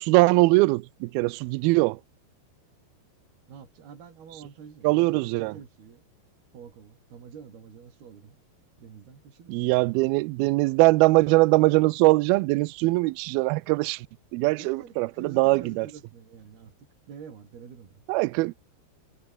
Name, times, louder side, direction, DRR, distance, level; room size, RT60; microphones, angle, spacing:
voice 1, 0.0-2.0 4.8-5.5 9.5-14.1 14.3-15.9 18.1-18.5, right 22 dB, 90° right, 2.1 m, -22 dB
voice 2, 3.5-6.0 6.5-8.4 8.8-10.1 14.6-16.7 17.1-18.1, right 7 dB, 60° right, 6.0 m, -46 dB
omnidirectional pair, 5.1 m